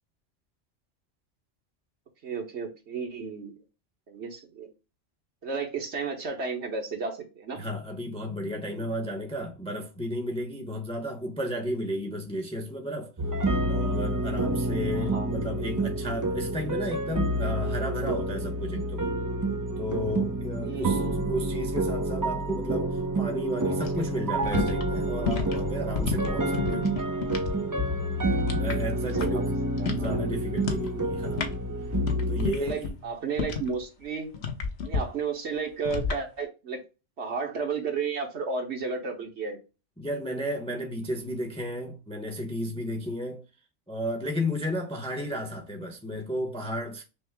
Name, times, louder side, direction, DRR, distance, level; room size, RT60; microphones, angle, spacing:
voice 1, 2.2-3.5 4.1-4.7 5.4-7.6 14.9-15.3 20.6-21.2 23.7-24.1 26.4-27.0 29.1-29.4 29.7-30.3 32.6-34.3 34.9-36.8 37.2-39.6, right 5 dB, 65° right, 1.3 m, -33 dB
voice 2, 7.5-13.1 13.7-19.1 19.8-26.9 28.6-29.5 29.9-31.4 32.3-33.0 40.0-43.4 43.9-47.0, equal, 5° left, 0.7 m, -33 dB
sound 1, 13.2-32.5, right 1 dB, 30° right, 0.4 m, -28 dB
sound 2, 23.8-27.6 27.8-29.5 29.7-30.2 30.6-30.9 31.2-33.8 34.3-35.0 35.9-36.2, left 5 dB, 60° left, 1.1 m, -31 dB
6.0 x 2.1 x 3.4 m
omnidirectional pair, 1.3 m